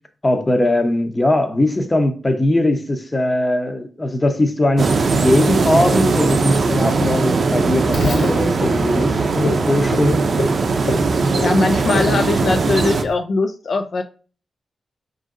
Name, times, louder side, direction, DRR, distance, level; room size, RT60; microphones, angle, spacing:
voice 1, 0.2-10.3, left 1 dB, 20° left, 0.7 m, -20 dB
sound 1, 4.8-13.0, right 4 dB, 60° right, 0.5 m, -19 dB
Frog, 7.9-13.1, left 1 dB, 80° left, 1.4 m, -28 dB
voice 2, 11.4-14.0, left 3 dB, 60° left, 0.3 m, -20 dB
5.0 x 2.6 x 3.7 m
wide cardioid pair, 105°, 0 cm